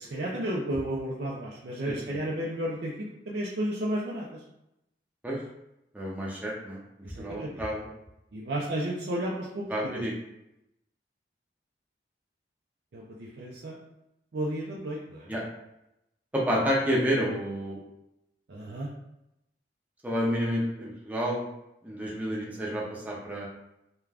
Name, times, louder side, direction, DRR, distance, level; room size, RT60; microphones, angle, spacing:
voice 1, 0.0-4.4 7.0-7.5 8.3-10.0 12.9-13.8 14.3-15.3 18.5-18.9, right 1 dB, 70° right, -4 dB, 0.4 m, -33 dB
voice 2, 1.8-2.2 5.2-5.4 5.9-6.8 7.2-7.9 9.7-10.1 15.3-15.4 16.3-17.8 20.0-21.5 21.8-23.5, equal, 10° right, -4 dB, 0.5 m, -29 dB
2.4 x 2.2 x 3.3 m, 0.86 s
head